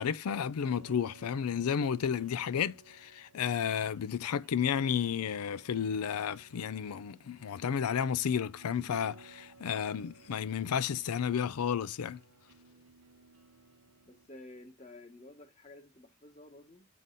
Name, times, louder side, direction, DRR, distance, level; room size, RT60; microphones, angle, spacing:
voice 1, 0.0-12.2, left 7 dB, 85° left, 0.4 m, -32 dB
sound 1, 0.6-14.3, right 3 dB, 75° right, 1.0 m, -59 dB
voice 2, 14.0-16.9, left 2 dB, 30° left, 1.2 m, -52 dB
7.5 x 3.9 x 3.9 m
head